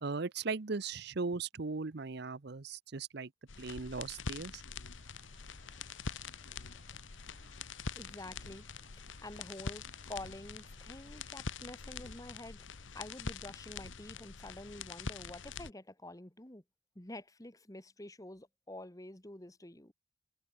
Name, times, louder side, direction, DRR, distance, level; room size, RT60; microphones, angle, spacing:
voice 1, 0.0-3.3 3.6-4.6, right 4 dB, 60° right, 0.8 m, -38 dB
sound 1, 3.5-15.7, left 4 dB, 75° left, 1.2 m, -44 dB
sound 2, 5.0-12.3, right 4 dB, 40° right, 7.5 m, -67 dB
voice 2, 7.9-8.6 8.9-16.6 17.0-19.9, left 1 dB, 20° left, 2.0 m, -48 dB
head